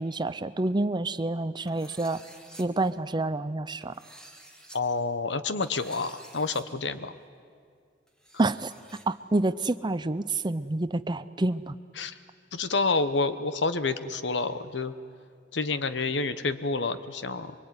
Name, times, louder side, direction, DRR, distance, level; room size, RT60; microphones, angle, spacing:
voice 1, 0.0-2.2 2.6-4.0 8.4-8.7 9.1-11.7, right 2 dB, 25° right, 14 dB, 0.6 m, -28 dB
sound 1, 1.7-2.6 3.8-4.8 5.6-6.6 6.9-7.0 8.1-9.0, right 1 dB, 5° left, 2.4 m, -50 dB
voice 2, 4.7-7.1 12.0-12.1 12.5-14.9 15.5-17.5, left 3 dB, 65° left, 12 dB, 1.2 m, -28 dB
24.5 x 23.5 x 9.7 m, 2.2 s
head